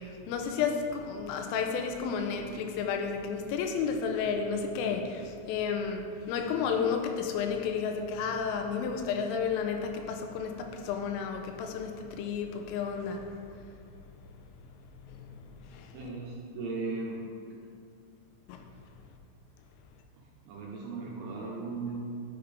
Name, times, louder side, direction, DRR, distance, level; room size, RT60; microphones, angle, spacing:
voice 1, 0.0-13.4 15.0-16.0 18.5-18.6, left 6 dB, 85° left, 4 dB, 3.2 m, -32 dB
voice 2, 15.9-17.3 20.5-22.0, right 3 dB, 75° right, -4 dB, 2.7 m, -37 dB
11.5 x 6.5 x 3.5 m, 2.4 s
omnidirectional pair, 5.9 m